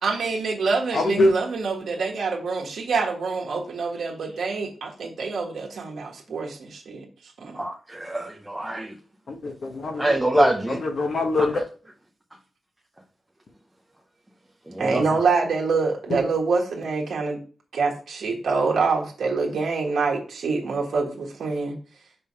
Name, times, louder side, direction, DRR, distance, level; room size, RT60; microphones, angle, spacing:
voice 1, 0.0-7.0 7.4-7.6 14.8-17.4 17.7-21.8, right 4 dB, 75° right, 1.5 m, -26 dB
voice 2, 0.9-1.3 9.3-11.5, left 2 dB, 50° left, 1.1 m, -24 dB
voice 3, 7.5-8.9 10.0-10.8 11.4-11.6 14.7-15.0, right 1 dB, 10° right, 0.6 m, -25 dB
5.4 x 3.5 x 5.4 m
wide cardioid pair, 165°, 0 cm